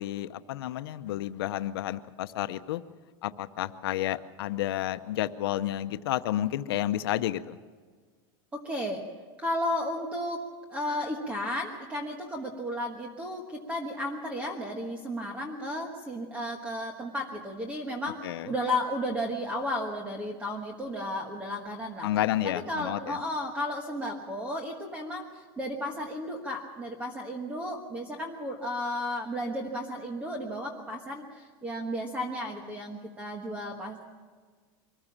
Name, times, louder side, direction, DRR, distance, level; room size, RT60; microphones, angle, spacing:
voice 1, 0.0-2.8 3.2-7.6 18.2-18.5 22.0-23.2, left 13 dB, 90° left, 11 dB, 0.8 m, -31 dB
voice 2, 8.5-9.0 9.4-10.4 10.7-22.1 22.4-34.0, left 1 dB, 10° right, 3 dB, 1.3 m, -33 dB
23.5 x 15.0 x 7.4 m, 1.5 s
supercardioid pair, 170°, 12 cm